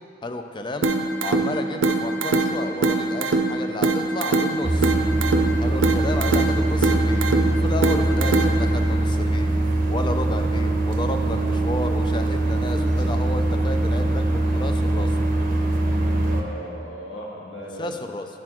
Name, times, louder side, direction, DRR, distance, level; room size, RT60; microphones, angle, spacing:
voice 1, 0.2-0.9 1.2-4.9 5.6-15.2 17.8-18.3, left 2 dB, 25° left, 6 dB, 0.4 m, -32 dB
sound 1, 0.8-8.8, right 3 dB, 85° right, 0.6 m, -23 dB
sound 2, 4.6-16.4, right 2 dB, 45° right, 0.6 m, -22 dB
voice 2, 16.2-17.9, equal, 75° left, -2 dB, 1.3 m, -37 dB
11.0 x 4.3 x 4.4 m, 2.5 s
head